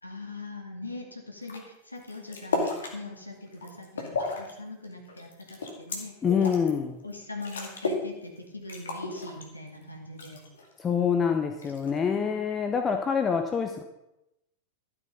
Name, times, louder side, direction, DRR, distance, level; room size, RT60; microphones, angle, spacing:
voice 1, 0.0-6.2 7.0-10.4 12.1-12.3, left 2 dB, 85° left, 2 dB, 2.1 m, -41 dB
sound 1, 1.4-1.6 2.0-2.9 3.4-4.5 4.8-6.7 7.1-7.2 7.4-8.1 8.4-8.5 8.7-9.8 10.2-10.7 11.6-12.1, left 3 dB, 65° left, 2.3 m, -33 dB
voice 2, 6.2-7.0 10.8-13.8, left 6 dB, 20° left, 5 dB, 0.9 m, -26 dB
13.0 x 7.8 x 5.1 m, 0.88 s
figure-of-eight pair, 90°, 0 cm